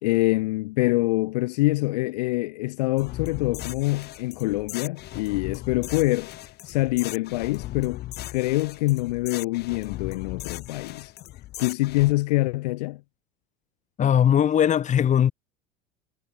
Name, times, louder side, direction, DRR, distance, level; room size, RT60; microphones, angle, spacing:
voice 1, 0.0-6.3 6.6-8.0 8.3-11.1 11.6-13.0, left 20 dB, 80° left, 0.7 m, -25 dB
sound 1, 3.0-12.1, left 15 dB, 55° left, 7.5 m, -37 dB
voice 2, 14.0-15.3, left 9 dB, 35° left, 3.1 m, -19 dB
hypercardioid pair, 95°, 21 cm